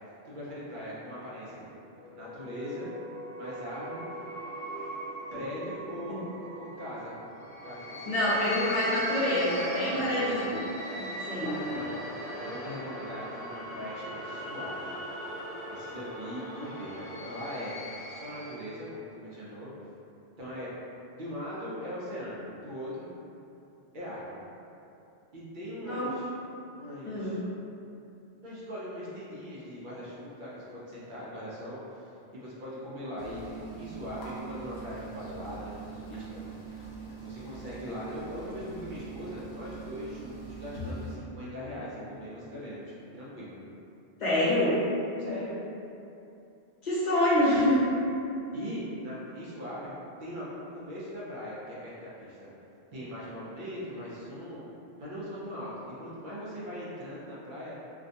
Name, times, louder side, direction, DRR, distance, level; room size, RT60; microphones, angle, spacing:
voice 1, 0.2-2.9 3.4-4.2 5.3-6.2 6.5-7.1 7.6-8.5 9.9-10.5 11.4-12.0 12.4-14.9 15.7-17.8 18.1-19.7 20.4-20.7 21.1-23.1 23.9-24.4 25.3-26.3 26.8-27.4 28.4-36.4 37.2-43.6 45.2-45.5 48.5-52.5 52.9-54.6 55.0-57.8, equal, 60° right, -8 dB, 0.7 m, -40 dB
sound 1, 2.0-18.8, equal, 5° right, 0.5 m, -39 dB
voice 2, 8.1-10.4 10.9-11.6 25.8-26.1 27.0-27.3 44.2-44.8 46.8-47.9, left 1 dB, 50° left, -10 dB, 0.8 m, -26 dB
sound 2, 33.2-41.1, right 4 dB, 80° left, 0.8 m, -42 dB
2.4 x 2.2 x 2.6 m, 2.8 s
omnidirectional pair, 1.1 m